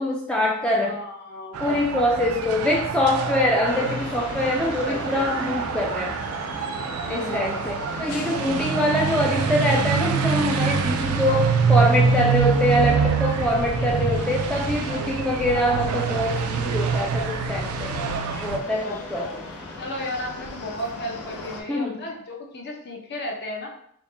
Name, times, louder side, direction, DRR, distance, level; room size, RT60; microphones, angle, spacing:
voice 1, 0.0-1.0 1.6-6.2 7.1-17.9 18.4-19.4 21.7-22.0, left 1 dB, 5° left, -3 dB, 0.4 m, -24 dB
voice 2, 0.8-1.8 4.6-5.4 7.1-7.6 14.9-15.2 18.5-19.4 19.8-23.7, left 1 dB, 50° left, 1 dB, 0.7 m, -34 dB
sound 1, 1.5-18.6, right 5 dB, 80° right, 0.4 m, -25 dB
sound 2, 3.6-21.6, left 2 dB, 85° left, 0.7 m, -38 dB
4.6 x 2.1 x 3.3 m, 0.68 s
head